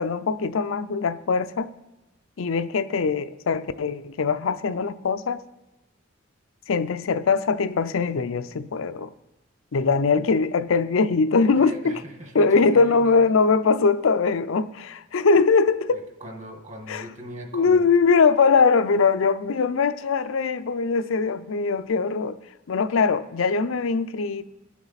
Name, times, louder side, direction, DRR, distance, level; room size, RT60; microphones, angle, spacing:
voice 1, 0.0-1.7 2.4-5.4 6.7-9.1 9.7-12.0 12.3-16.0 16.9-17.0 17.5-22.4 22.7-24.4, left 4 dB, 90° left, 0.5 m, -21 dB
voice 2, 11.5-13.3 15.9-17.9, equal, 35° right, 1.5 m, -40 dB
19.0 x 7.3 x 4.1 m
head